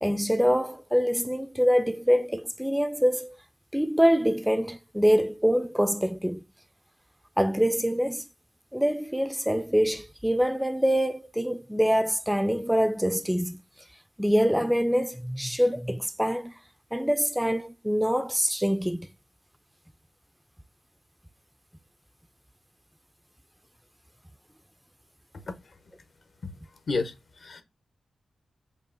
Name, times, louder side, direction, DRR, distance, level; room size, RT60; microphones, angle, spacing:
voice 1, 0.0-3.4 3.7-6.4 7.4-8.2 8.7-13.6 14.2-16.5 16.9-19.1, equal, 5° right, 0.3 m, -25 dB
voice 2, 26.9-27.6, left 3 dB, 60° left, 0.8 m, -31 dB
5.5 x 2.1 x 2.5 m
cardioid pair, 55°, 0 cm